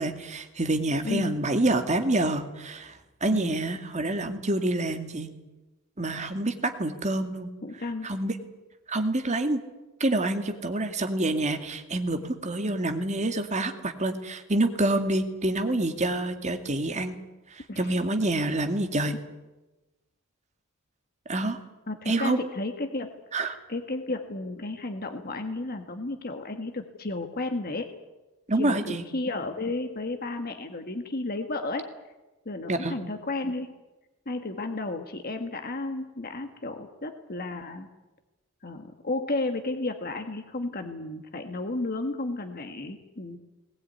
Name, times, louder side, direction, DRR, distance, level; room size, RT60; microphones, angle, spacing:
voice 1, 0.0-5.3 6.0-7.5 8.0-8.3 8.9-9.6 10.0-17.2 17.5-19.1 21.3-21.6 22.1-22.4 23.3-23.6 28.5-29.0 32.7-33.0, right 2 dB, 35° right, 6 dB, 2.2 m, -27 dB
voice 2, 7.6-8.1 17.7-17.9 19.1-19.2 21.9-23.1 23.4-27.9 28.6-31.9 32.4-33.7 34.2-37.9 38.6-43.4, left 2 dB, 45° left, 6 dB, 1.7 m, -33 dB
20.5 x 19.5 x 9.6 m, 1.1 s
head